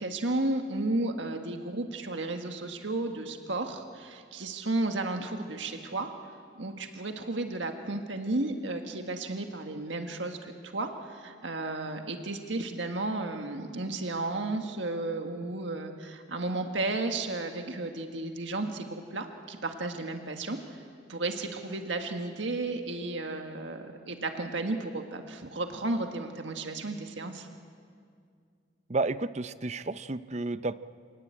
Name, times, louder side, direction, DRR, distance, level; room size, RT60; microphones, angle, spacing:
voice 1, 0.0-6.1 6.6-20.8 21.1-27.5, right 2 dB, 75° right, 4 dB, 1.7 m, -33 dB
voice 2, 28.9-30.8, right 3 dB, 35° right, 13 dB, 0.6 m, -31 dB
26.5 x 19.0 x 8.9 m, 2.2 s
head